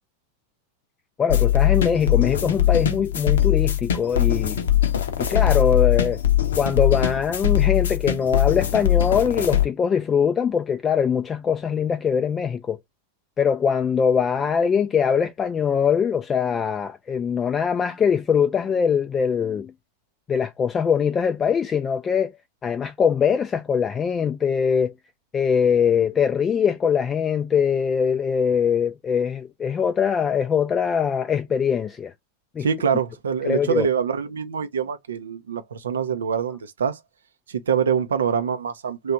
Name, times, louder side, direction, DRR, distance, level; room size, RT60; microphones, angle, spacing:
voice 1, 1.2-4.6 5.2-6.2 6.6-12.8 13.4-19.7 20.3-22.3 22.6-24.9 25.3-32.1 32.6-32.7 33.4-33.9, left 7 dB, 20° left, 0.3 m, -22 dB
sound 1, 1.3-9.6, left 11 dB, 60° left, 0.7 m, -21 dB
voice 2, 32.6-37.0 37.5-39.1, right 7 dB, 65° right, 0.5 m, -25 dB
3.1 x 2.4 x 3.6 m
figure-of-eight pair, 90°, 0 cm